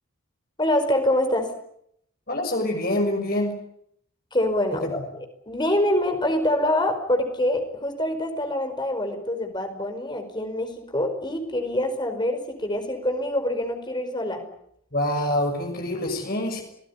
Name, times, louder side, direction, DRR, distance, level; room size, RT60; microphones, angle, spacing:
voice 1, 0.6-1.5 4.3-14.4, left 1 dB, 20° left, 6 dB, 5.0 m, -25 dB
voice 2, 2.3-3.6 4.8-4.9 14.9-16.6, left 1 dB, 40° left, 3 dB, 6.3 m, -25 dB
27.5 x 20.0 x 9.9 m, 0.73 s
head